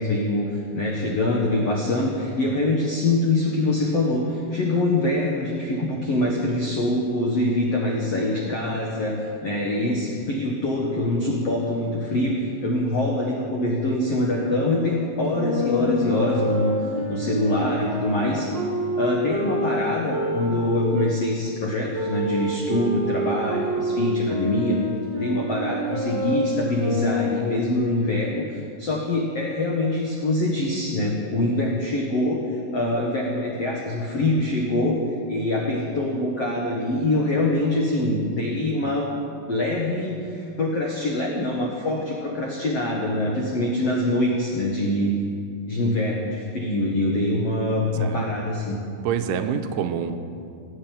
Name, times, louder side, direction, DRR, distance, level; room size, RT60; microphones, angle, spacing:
voice 1, 0.0-18.5 19.0-24.8 25.2-35.0 35.3-39.1 39.5-45.1 45.7-48.8, left 1 dB, 80° left, -2 dB, 1.4 m, -24 dB
Wind instrument woodwind instrument, 15.3-21.1 21.9-27.7, equal, 20° right, 0.9 m, -28 dB
voice 2, 49.0-50.2, right 7 dB, 90° right, 7 dB, 3.3 m, -26 dB
17.5 x 8.1 x 9.0 m, 2.5 s
omnidirectional pair, 5.4 m